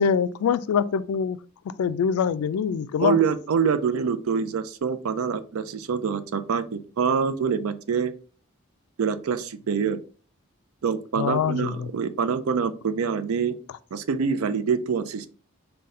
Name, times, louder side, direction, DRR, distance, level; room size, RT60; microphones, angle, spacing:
voice 1, 0.0-1.4 1.8-3.2 11.2-11.9, left 7 dB, 85° left, 0.3 m, -24 dB
voice 2, 3.0-8.1 9.0-10.0 10.8-13.6 13.9-15.3, right 6 dB, 75° right, 0.4 m, -25 dB
4.0 x 2.2 x 3.7 m
head